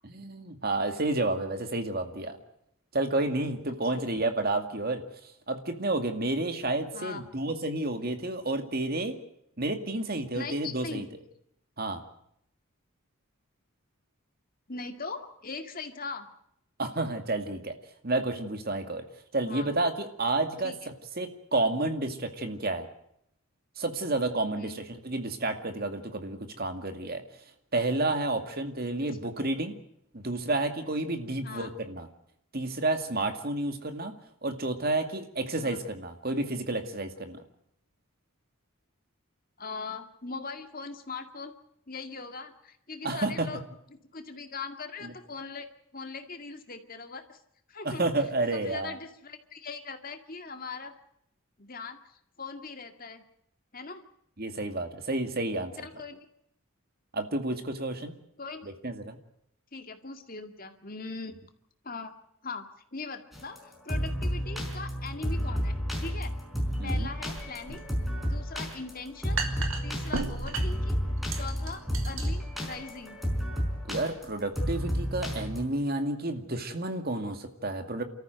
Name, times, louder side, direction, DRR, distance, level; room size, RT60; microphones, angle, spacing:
voice 1, 0.0-2.4 2.9-5.0 5.5-9.2 9.6-11.1 11.8-12.0 16.8-17.7 18.0-19.0 19.3-22.9 23.8-27.2 27.7-29.8 30.1-32.1 32.5-34.1 34.4-37.4 43.0-43.5 45.0-45.1 47.8-49.0 54.4-55.8 57.1-58.2 58.6-59.2 66.8-67.1 73.9-78.0, right 2 dB, 45° right, 7 dB, 2.2 m, -30 dB
voice 2, 10.3-11.1 14.7-16.3 19.4-19.7 20.6-20.8 24.5-24.9 31.4-31.7 35.6-35.8 39.6-41.5 41.9-43.6 44.1-45.7 45.9-47.4 47.7-48.1 48.5-50.9 51.6-53.2 53.7-54.0 55.8-56.3 58.4-58.7 59.7-61.3 61.8-62.1 62.4-62.7 62.9-66.4 66.8-67.8 68.2-69.4 69.8-71.0 71.3-73.2, left 4 dB, 40° left, 7 dB, 2.2 m, -40 dB
sound 1, 63.3-75.7, equal, ahead, 4.9 m, -31 dB
sound 2, 66.9-74.6, right 3 dB, 70° right, 2.7 m, -38 dB
28.5 x 14.0 x 7.9 m, 0.73 s
head